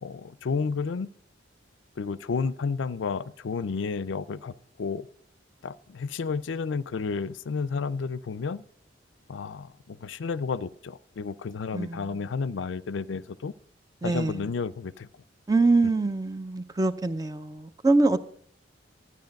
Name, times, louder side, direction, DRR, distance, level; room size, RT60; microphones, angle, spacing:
voice 1, 0.0-1.1 2.0-4.5 4.8-5.1 5.6-8.6 9.3-13.5 14.0-15.1, left 5 dB, 80° left, 0.5 m, -31 dB
voice 2, 11.7-12.2 14.0-14.4 15.5-18.2, right 3 dB, 20° right, 0.5 m, -24 dB
13.0 x 9.5 x 5.2 m
head